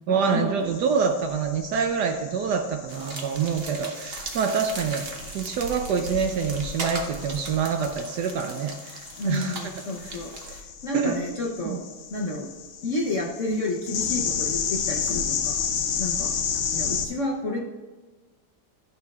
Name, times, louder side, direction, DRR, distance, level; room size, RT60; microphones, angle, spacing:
voice 1, 0.1-5.1 5.3-9.6 10.0-10.2 10.9-11.2 11.6-11.8, right 6 dB, 70° right, 5 dB, 1.0 m, -26 dB
sound 1, 0.7-17.1, left 7 dB, 80° left, 1.7 m, -33 dB
sound 2, 2.9-10.6, right 3 dB, 45° right, 0.8 m, -38 dB
voice 2, 9.2-11.8 12.1-12.5 12.8-15.6 16.0-16.3 16.7-17.6, left 2 dB, 60° left, -1 dB, 0.8 m, -30 dB
12.5 x 6.6 x 2.4 m, 1.3 s
omnidirectional pair, 2.2 m